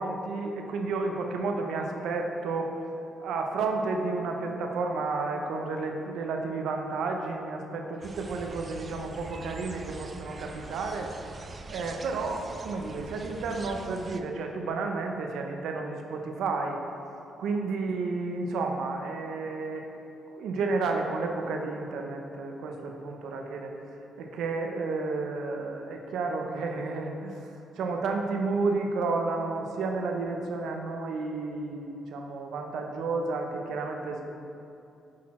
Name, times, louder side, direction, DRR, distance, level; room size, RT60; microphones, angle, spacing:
voice 1, 0.0-2.8 3.2-11.1 11.7-16.8 17.4-19.8 20.4-23.8 24.2-34.2, right 3 dB, 75° right, 3 dB, 0.6 m, -31 dB
sound 1, 8.0-14.2, right 3 dB, 35° right, 0.4 m, -43 dB
6.2 x 4.2 x 4.2 m, 2.7 s
cardioid pair, 90°, 0 cm